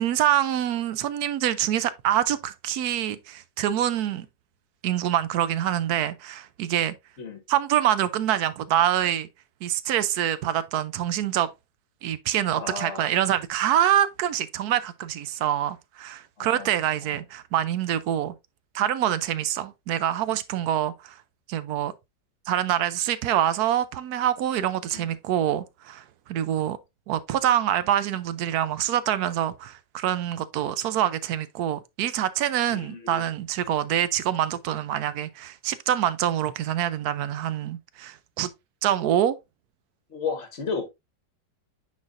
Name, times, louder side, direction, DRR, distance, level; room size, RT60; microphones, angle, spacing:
voice 1, 0.0-4.3 4.8-6.9 7.5-9.3 9.6-11.5 12.0-18.3 18.7-21.1 21.5-21.9 22.5-26.0 26.3-26.8 27.1-38.5 38.8-39.4, right 11 dB, 70° right, 1.0 m, -25 dB
voice 2, 12.5-13.2 16.4-16.7 17.0-17.2 24.9-25.1 32.7-33.2 40.1-40.9, left 5 dB, 45° left, 1.1 m, -34 dB
9.5 x 4.3 x 2.5 m
omnidirectional pair, 2.0 m